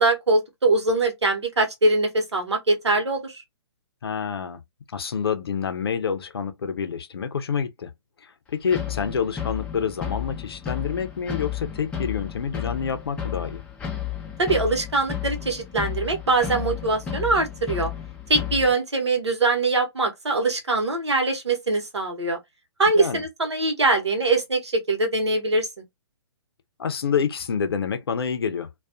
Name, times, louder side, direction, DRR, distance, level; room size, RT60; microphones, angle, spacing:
voice 1, 0.0-3.4 14.4-17.9 18.3-22.4 22.8-25.7, right 2 dB, 75° right, 1.0 m, -22 dB
voice 2, 4.0-4.6 4.9-7.9 8.2-13.6 22.9-23.2 26.8-28.7, left 6 dB, 60° left, 0.6 m, -28 dB
sound 1, 8.7-18.7, left 10 dB, 5° left, 0.4 m, -32 dB
2.3 x 2.3 x 2.5 m
figure-of-eight pair, 125°, 15 cm